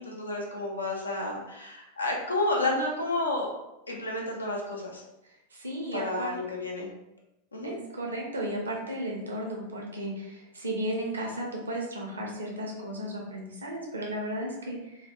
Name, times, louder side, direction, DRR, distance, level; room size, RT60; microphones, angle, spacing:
voice 1, 0.0-3.5 3.9-5.0 5.9-6.9 7.5-7.7, left 2 dB, 75° left, -1 dB, 0.5 m, -31 dB
voice 2, 5.5-6.3 7.6-15.0, right 1 dB, 75° right, -1 dB, 0.6 m, -34 dB
2.3 x 2.1 x 2.9 m, 0.91 s
figure-of-eight pair, 90°, 0 cm